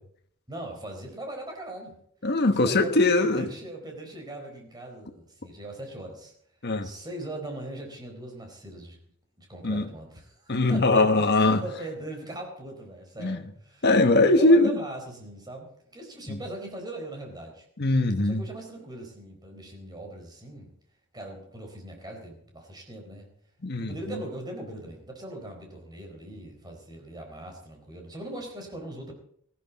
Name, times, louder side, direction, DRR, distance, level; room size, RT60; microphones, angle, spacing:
voice 1, 0.5-2.0 2.5-6.3 6.8-9.0 9.4-13.9 14.2-17.7 18.2-20.7 21.1-23.3 23.8-29.1, right 1 dB, 20° right, 4.3 m, -40 dB
voice 2, 2.2-3.5 6.6-6.9 9.6-9.8 10.5-11.6 13.2-13.4 13.8-14.8 16.3-16.4 17.8-18.4 23.6-23.9, left 2 dB, 50° left, 1.3 m, -21 dB
19.0 x 14.5 x 4.2 m
head